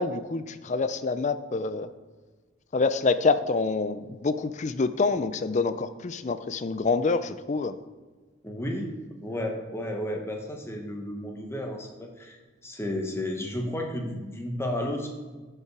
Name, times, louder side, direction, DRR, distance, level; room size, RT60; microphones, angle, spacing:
voice 1, 0.0-1.9 2.7-7.8, left 4 dB, 35° left, 12 dB, 0.4 m, -26 dB
voice 2, 8.4-8.9 9.2-12.4 12.6-15.1, left 1 dB, 10° left, 2 dB, 1.1 m, -32 dB
13.0 x 5.6 x 4.7 m, 1.3 s
head